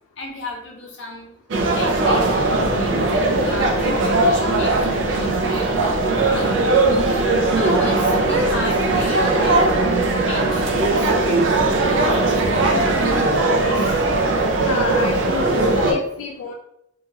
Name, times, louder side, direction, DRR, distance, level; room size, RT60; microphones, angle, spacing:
voice 1, 0.2-1.3 1.7-6.8 7.3-10.0 10.3-11.1 12.5-13.2 13.5-13.9, left 2 dB, 60° left, 0 dB, 0.7 m, -35 dB
sound 1, 1.5-15.9, right 2 dB, 70° right, 0.5 m, -19 dB
voice 2, 12.7-13.2 14.6-16.5, left 4 dB, 85° left, 1 dB, 0.3 m, -28 dB
2.8 x 2.4 x 2.8 m, 0.81 s
head